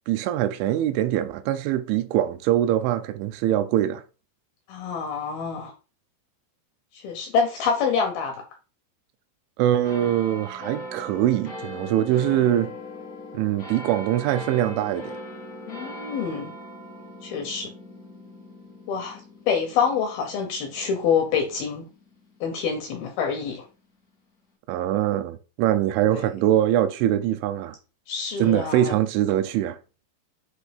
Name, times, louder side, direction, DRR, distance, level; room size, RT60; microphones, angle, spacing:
voice 1, 0.1-4.0 9.6-12.7 13.3-15.2 24.7-27.8 28.4-29.8, right 12 dB, 85° right, 3.1 m, -23 dB
voice 2, 4.7-5.7 6.9-8.4 15.7-16.5 17.2-17.7 18.9-19.2 19.5-21.9 22.4-23.7 26.1-26.3 28.1-29.0, left 6 dB, 75° left, 2.2 m, -26 dB
sound 1, 9.8-22.7 23.4-23.5, left 1 dB, 60° left, 0.9 m, -40 dB
7.9 x 2.7 x 5.1 m
omnidirectional pair, 5.3 m